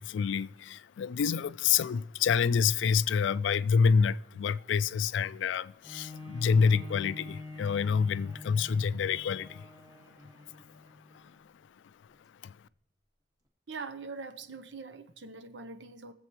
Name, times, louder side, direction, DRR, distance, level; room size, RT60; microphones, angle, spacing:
voice 1, 0.0-9.7 12.4-12.5, left 6 dB, 80° left, 0.3 m, -27 dB
Bowed string instrument, 5.8-11.5 12.1-12.2, left 3 dB, 20° right, 1.2 m, -47 dB
voice 2, 13.7-16.1, right 4 dB, 80° right, 0.8 m, -42 dB
22.5 x 7.7 x 3.0 m
head